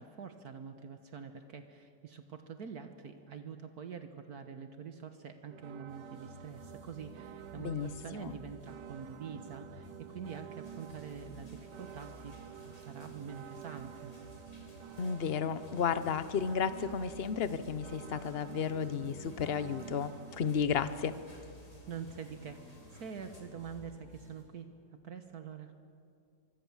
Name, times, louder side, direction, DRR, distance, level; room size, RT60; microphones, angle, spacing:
voice 1, 0.0-12.3 12.6-14.1 21.9-24.7 25.0-25.7, right 6 dB, 60° right, 8 dB, 1.6 m, -45 dB
sound 1, 5.5-20.5, right 10 dB, 80° right, 1.4 m, -50 dB
sound 2, 5.9-24.4, left 1 dB, 60° left, 6.2 m, -55 dB
voice 2, 7.6-8.3 15.0-21.1, left 7 dB, 45° left, 14 dB, 0.9 m, -33 dB
sound 3, 10.6-23.4, left 1 dB, 20° left, 3.1 m, -60 dB
24.5 x 24.0 x 7.3 m, 2.4 s
omnidirectional pair, 1.8 m